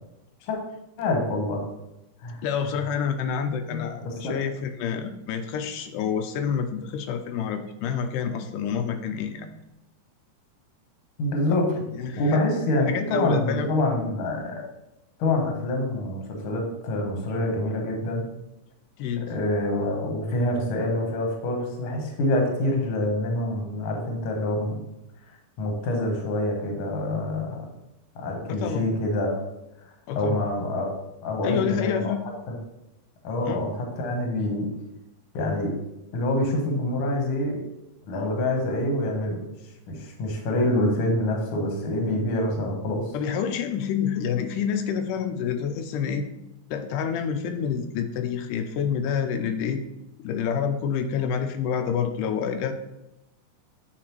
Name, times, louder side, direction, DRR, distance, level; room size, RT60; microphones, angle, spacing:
voice 1, 1.0-1.6 2.2-2.4 3.7-4.3 11.2-11.7 12.1-14.6 15.2-18.3 19.2-24.8 25.6-27.6 28.1-29.4 30.1-30.9 31.2-32.1 33.2-34.7 35.3-35.7 36.1-37.6 38.0-39.4 39.9-43.1, left 1 dB, 60° left, 1 dB, 1.6 m, -26 dB
voice 2, 2.4-9.5 11.5-11.6 11.9-12.4 12.9-13.7 19.0-19.3 28.5-28.9 30.1-30.4 31.4-32.2 33.4-33.7 43.1-46.3 46.7-49.8 50.2-52.7, left 7 dB, 85° left, 7 dB, 2.1 m, -28 dB
8.6 x 4.2 x 3.0 m, 0.89 s
omnidirectional pair, 3.7 m